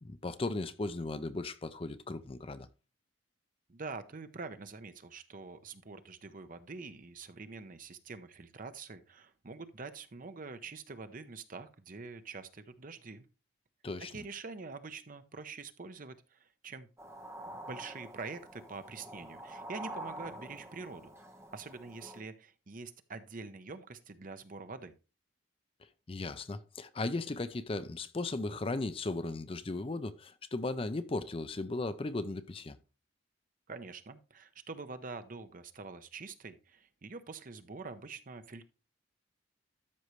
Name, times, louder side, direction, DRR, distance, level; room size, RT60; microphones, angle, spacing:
voice 1, 0.0-2.7 13.8-14.1 26.1-32.8, left 2 dB, 30° left, 0.5 m, -36 dB
voice 2, 3.7-13.2 14.0-16.9 17.7-21.1 21.5-24.9 33.7-38.7, right 4 dB, 45° right, 0.8 m, -45 dB
sound 1, 17.0-22.2, right 1 dB, 15° right, 1.2 m, -46 dB
13.0 x 5.5 x 3.1 m
head